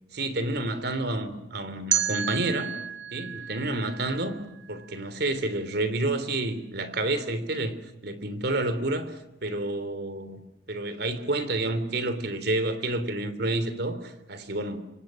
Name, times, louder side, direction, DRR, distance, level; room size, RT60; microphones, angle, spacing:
voice 1, 0.1-2.7 3.1-4.4 4.7-10.4 10.7-14.8, right 2 dB, 60° right, 12 dB, 3.3 m, -29 dB
sound 1, 1.9-4.9, right 10 dB, 75° right, 1.5 m, -31 dB
29.0 x 26.0 x 6.4 m, 0.93 s
head